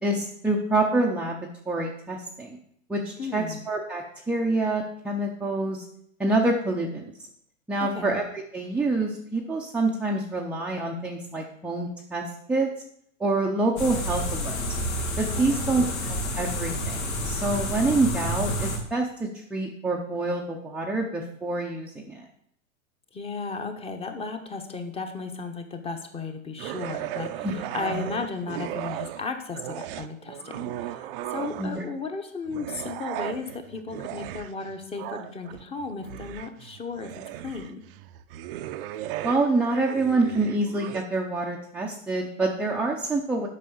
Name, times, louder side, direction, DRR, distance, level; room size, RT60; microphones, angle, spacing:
voice 1, 0.0-2.6 2.9-5.9 6.2-7.1 7.7-12.7 13.2-14.6 15.2-22.3 27.4-28.0 31.6-31.8 39.2-43.5, right 2 dB, 5° right, -2 dB, 0.6 m, -27 dB
voice 2, 3.2-3.6 7.8-8.2 15.4-15.9 23.1-37.1 37.4-37.8, left 4 dB, 15° left, 7 dB, 1.0 m, -35 dB
sound 1, 13.8-18.8, equal, 80° left, 2.4 m, -29 dB
sound 2, 26.6-29.3 29.5-31.9 32.4-41.1, right 13 dB, 40° right, 0.6 m, -36 dB
8.5 x 5.5 x 6.9 m, 0.69 s
hypercardioid pair, 130°, 41 cm